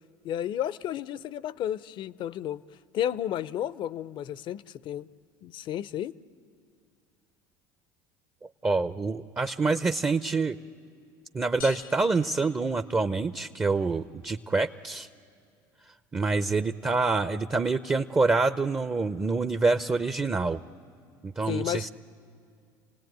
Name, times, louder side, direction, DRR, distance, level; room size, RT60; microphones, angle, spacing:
voice 1, 0.2-2.6 2.9-5.1 5.4-6.1 21.5-21.9, left 11 dB, 50° left, 18 dB, 0.6 m, -32 dB
voice 2, 8.6-10.6 11.3-15.1 16.1-20.6 21.2-21.9, right 3 dB, 20° right, 11 dB, 0.7 m, -26 dB
sound 1, 11.6-13.4, left 9 dB, 85° left, 1.3 m, -46 dB
29.0 x 18.0 x 9.2 m, 2.3 s
hypercardioid pair, 75°, 11 cm